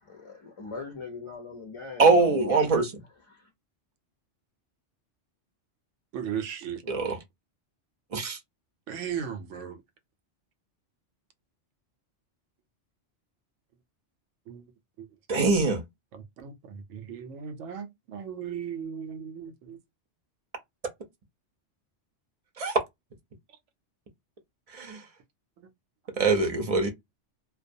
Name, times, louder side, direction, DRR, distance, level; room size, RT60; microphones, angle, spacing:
voice 1, 0.0-2.6 3.3-3.5, left 4 dB, 40° left, 0.4 m, -41 dB
voice 2, 2.0-2.9 6.9-7.2 8.1-8.4 15.3-15.8 22.6-22.7 24.7-25.0 26.2-26.9, right 3 dB, 40° right, 0.5 m, -23 dB
voice 3, 6.1-6.8 8.9-9.8 14.5-14.6 15.0-15.1 16.1-19.8, right 8 dB, 85° right, 0.9 m, -36 dB
2.2 x 2.2 x 2.6 m
omnidirectional pair, 1.2 m